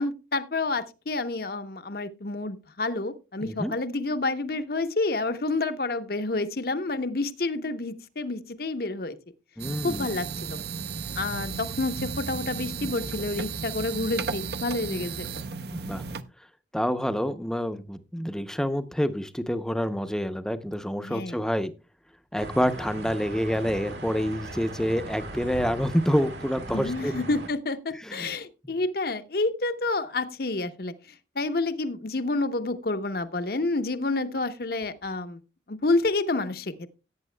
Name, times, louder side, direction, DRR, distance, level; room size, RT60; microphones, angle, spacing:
voice 1, 0.0-9.2 9.8-10.6 11.2-15.3 21.0-21.4 26.7-30.9 31.4-35.4 35.7-36.9, left 2 dB, 55° left, 0.8 m, -29 dB
voice 2, 3.4-3.7 9.6-10.1 15.7-16.0 16.7-21.7 22.3-27.2 28.0-28.3 28.6-28.7, equal, 5° left, 0.6 m, -27 dB
sound 1, 9.6-16.2, right 5 dB, 60° right, 0.7 m, -34 dB
sound 2, 22.4-27.5, right 2 dB, 75° right, 2.1 m, -39 dB
17.0 x 9.2 x 2.2 m
head